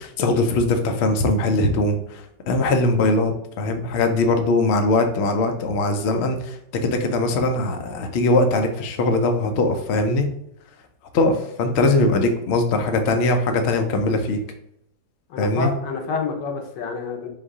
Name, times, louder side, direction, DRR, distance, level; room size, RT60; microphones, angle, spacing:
voice 1, 0.0-10.3 11.1-14.4 15.4-15.7, left 2 dB, 65° left, 5 dB, 0.6 m, -21 dB
voice 2, 15.3-17.3, left 4 dB, 85° left, 2 dB, 1.5 m, -28 dB
3.8 x 2.7 x 4.7 m, 0.74 s
omnidirectional pair, 1.8 m